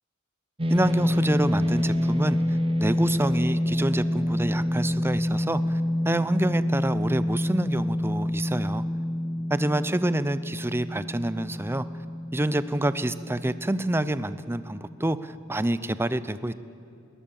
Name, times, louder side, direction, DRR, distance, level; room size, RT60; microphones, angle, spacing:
sound 1, 0.6-15.0, left 1 dB, 25° right, 1.0 m, -27 dB
voice 1, 0.7-8.8 9.5-11.8 12.3-16.5, right 1 dB, 10° right, 14 dB, 0.6 m, -27 dB
21.0 x 19.5 x 7.0 m, 2.7 s
head